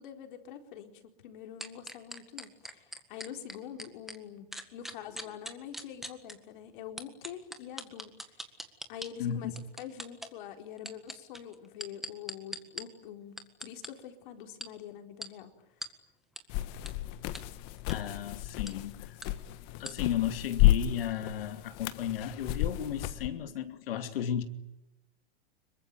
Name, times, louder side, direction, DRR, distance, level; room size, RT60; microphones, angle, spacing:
voice 1, 0.0-8.1 8.9-15.5, left 9 dB, 60° left, 4.4 m, -45 dB
sound 1, 1.6-4.2 4.5-6.3 7.0-9.1 9.6-10.3 10.8-12.8 13.4-13.9 14.6-14.7 15.2-15.3 15.8-15.9 16.4-16.5 16.9-17.0 17.3-17.4 17.8-18.0 18.7-18.8 19.2-19.3 19.8-19.9, equal, ahead, 1.7 m, -40 dB
voice 2, 9.2-9.6 17.9-19.2 19.8-24.4, left 10 dB, 75° left, 2.6 m, -34 dB
sound 2, 16.5-23.3, left 14 dB, 40° left, 1.6 m, -31 dB
26.0 x 23.0 x 9.4 m
supercardioid pair, 155°, 29 cm